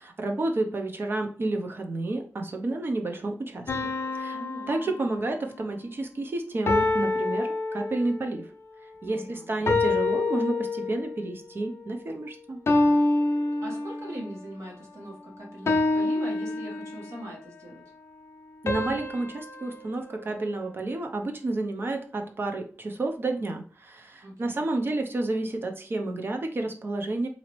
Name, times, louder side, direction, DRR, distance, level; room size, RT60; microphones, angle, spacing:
voice 1, 0.0-3.7 4.1-4.4 4.7-8.5 9.0-12.6 18.6-27.3, right 2 dB, 45° right, 4 dB, 0.6 m, -30 dB
sound 1, 3.7-5.6 6.7-8.3 9.7-11.2 12.7-14.3 15.7-17.3 18.7-21.0, left 2 dB, 60° left, 0.5 m, -27 dB
voice 2, 4.3-4.9 9.0-9.5 13.6-17.8 24.2-24.6, right 1 dB, 65° right, -1 dB, 1.4 m, -41 dB
4.0 x 2.7 x 3.1 m, 0.41 s
wide cardioid pair, 140°, 5 cm